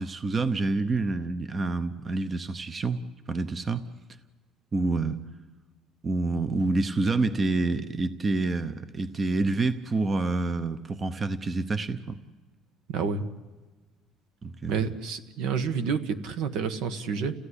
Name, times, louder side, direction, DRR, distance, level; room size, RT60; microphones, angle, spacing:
voice 1, 0.0-3.0 3.3-3.8 4.7-5.2 6.0-12.2 14.4-14.9, right 3 dB, 20° right, 12 dB, 0.8 m, -27 dB
voice 2, 12.9-13.2 14.7-17.3, right 6 dB, 70° right, 10 dB, 1.5 m, -29 dB
30.0 x 15.5 x 9.9 m, 1.3 s
cardioid pair, 160°, 0 cm